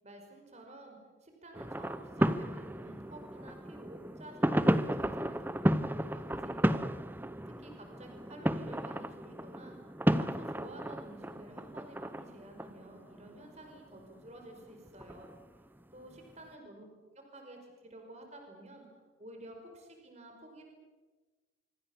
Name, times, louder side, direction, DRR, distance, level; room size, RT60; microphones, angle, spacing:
voice 1, 0.0-6.9 7.4-9.8 10.1-15.4 15.9-16.8 17.3-18.9 19.2-20.7, right 1 dB, 35° right, 3 dB, 5.3 m, -51 dB
sound 1, 1.5-14.1 14.6-15.4 16.2-16.3, equal, 10° right, 0.8 m, -33 dB
26.0 x 25.0 x 7.3 m, 1.3 s
head